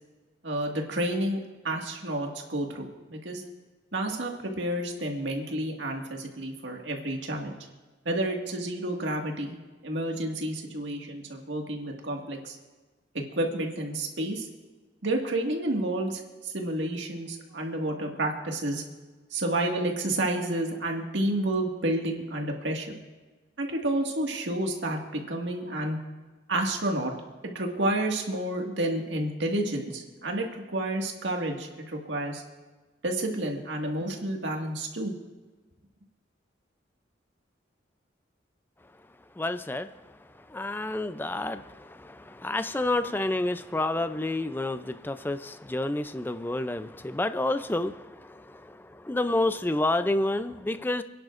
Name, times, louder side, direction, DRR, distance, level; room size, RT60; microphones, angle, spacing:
voice 1, 0.4-1.4 1.6-3.4 3.9-7.5 8.1-9.6 9.8-12.6 13.1-14.5 15.0-18.8 19.3-23.0 23.6-26.0 26.5-27.1 27.4-32.4 33.0-35.1, right 1 dB, 80° right, 1 dB, 1.9 m, -30 dB
voice 2, 39.4-39.9 40.5-51.0, left 2 dB, 10° left, 11 dB, 0.4 m, -29 dB
29.5 x 10.5 x 2.5 m, 1.3 s
head